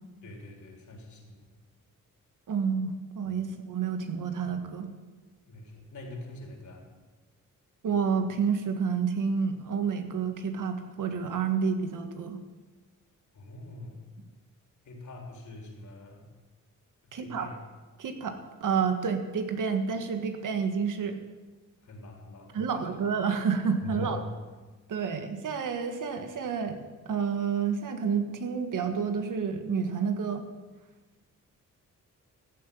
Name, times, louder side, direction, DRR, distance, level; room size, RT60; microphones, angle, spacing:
voice 1, 0.2-1.4 5.4-6.9 13.3-14.0 14.8-16.3 17.2-17.5 21.8-22.6 23.8-24.3, left 1 dB, 65° left, 1 dB, 3.9 m, -43 dB
voice 2, 2.5-4.9 7.8-12.4 17.1-17.5 18.0-21.2 22.5-24.2 24.9-30.4, right 6 dB, 70° right, 6 dB, 1.8 m, -29 dB
15.0 x 8.1 x 8.7 m, 1.3 s
cardioid pair, 80°, 33 cm